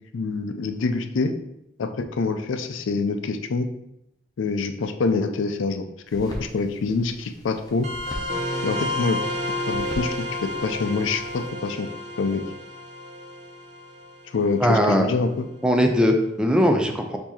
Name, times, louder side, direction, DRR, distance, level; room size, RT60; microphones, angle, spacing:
voice 1, 0.1-1.3 1.8-3.7 4.4-5.8 6.1-7.9 8.6-9.2 9.7-10.1 10.4-11.9 12.2-12.4 14.3-15.5, left 4 dB, 90° left, 8 dB, 0.4 m, -25 dB
sound 1, 6.1-11.5, equal, 20° left, 0.8 m, -41 dB
sound 2, 7.8-14.9, left 1 dB, 40° right, 0.8 m, -31 dB
voice 2, 14.6-15.1 15.6-17.2, equal, 5° right, 3 dB, 0.4 m, -20 dB
4.7 x 2.7 x 4.1 m, 0.83 s
head